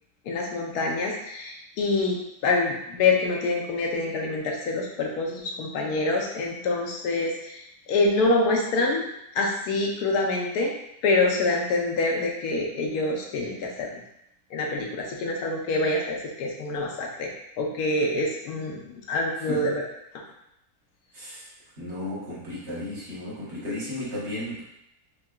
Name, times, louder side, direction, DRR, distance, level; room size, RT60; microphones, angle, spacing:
voice 1, 0.2-9.0 9.3-10.7 11.0-14.0 14.5-17.3 17.6-19.8, left 2 dB, 85° left, 0 dB, 1.2 m, -26 dB
voice 2, 19.4-19.7 21.1-21.5 21.8-24.6, left 1 dB, 50° right, -8 dB, 1.3 m, -34 dB
4.6 x 2.2 x 2.2 m, 0.81 s
omnidirectional pair, 1.6 m